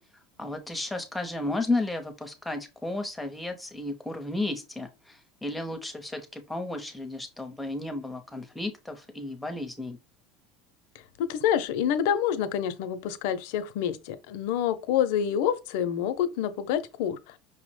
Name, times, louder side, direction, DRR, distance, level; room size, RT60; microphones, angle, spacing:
voice 1, 0.4-10.0, left 2 dB, 5° left, 0.7 m, -33 dB
voice 2, 11.2-17.2, left 9 dB, 75° left, 0.5 m, -27 dB
5.5 x 2.1 x 3.2 m
supercardioid pair, 145°, 0 cm